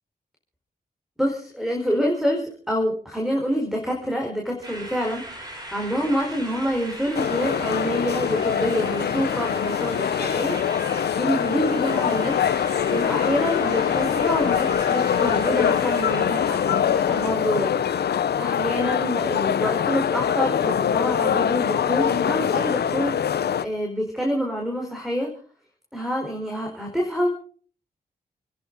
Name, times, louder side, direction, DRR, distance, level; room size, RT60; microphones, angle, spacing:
voice 1, 1.2-10.6 10.8-12.4 12.6-18.1 18.4-25.3 25.9-27.3, equal, ahead, 1 dB, 4.7 m, -27 dB
sound 1, 4.6-17.4, equal, 25° right, 7.1 m, -38 dB
sound 2, 7.1-23.6, left 8 dB, 85° left, 0.8 m, -23 dB
29.5 x 11.0 x 4.1 m, 0.43 s
cardioid pair, 65°, 17 cm